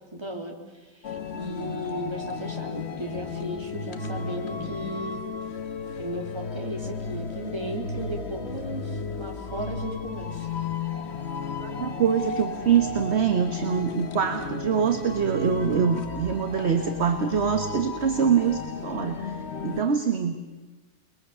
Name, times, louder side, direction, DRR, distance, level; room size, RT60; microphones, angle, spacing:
voice 1, 0.1-5.2 6.0-10.5, equal, 15° right, 1 dB, 3.2 m, -35 dB
sound 1, 1.0-19.8, left 4 dB, 40° left, 1.3 m, -34 dB
voice 2, 11.6-20.3, right 7 dB, 40° right, 6 dB, 1.3 m, -24 dB
28.5 x 22.0 x 6.9 m, 1.2 s
omnidirectional pair, 1.9 m